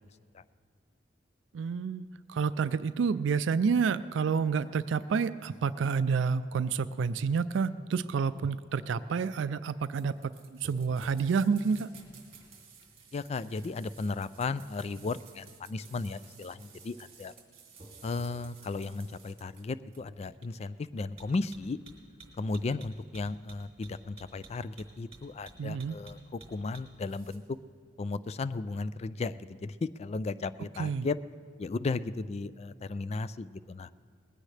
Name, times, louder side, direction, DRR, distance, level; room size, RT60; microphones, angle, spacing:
voice 1, 1.5-10.2 10.6-11.9 25.6-25.9 30.8-31.1, right 5 dB, 80° right, 14 dB, 0.4 m, -29 dB
sound 1, 9.9-27.4, right 4 dB, 35° right, 2.7 m, -54 dB
voice 2, 13.1-17.3 18.0-21.8 22.4-27.4 28.0-31.2 31.6-33.9, left 3 dB, 35° left, 15 dB, 0.3 m, -35 dB
20.0 x 16.0 x 3.3 m, 2.1 s
head